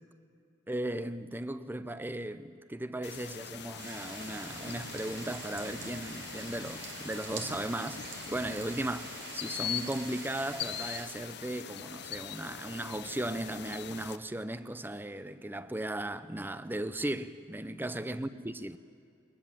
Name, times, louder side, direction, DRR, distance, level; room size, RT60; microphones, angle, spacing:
voice 1, 0.7-18.8, right 1 dB, 10° right, 0.6 m, -37 dB
sound 1, 3.0-14.2, left 8 dB, 60° left, 0.8 m, -42 dB
sound 2, 3.8-11.0, right 4 dB, 85° right, 3.9 m, -45 dB
23.0 x 20.0 x 7.5 m
head